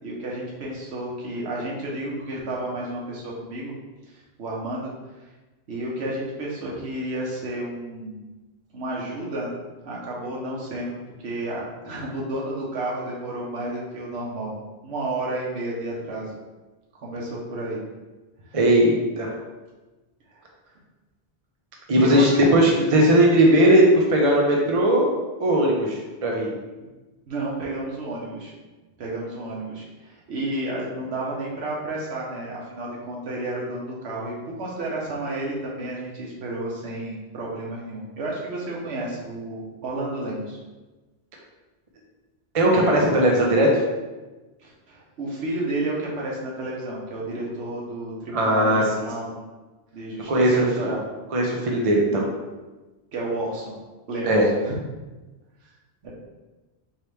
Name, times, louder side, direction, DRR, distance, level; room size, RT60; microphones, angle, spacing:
voice 1, 0.0-3.7 4.0-4.9 5.7-8.2 8.7-9.5 9.8-14.6 14.8-16.4 17.0-17.8 18.4-18.6 20.3-20.4 22.0-22.5 27.3-28.5 29.0-40.6 44.6-49.4 49.9-51.0 53.1-53.7 54.1-54.8 56.0-56.1, right 1 dB, 80° right, -4 dB, 1.1 m, -31 dB
voice 2, 18.5-19.3 21.9-25.1 25.4-26.5 42.5-43.7 48.3-48.8 50.3-50.5 50.8-50.9 51.3-52.3 54.2-54.4, right 1 dB, 40° right, -1 dB, 0.6 m, -18 dB
4.6 x 2.9 x 3.3 m, 1.2 s
omnidirectional pair, 1.1 m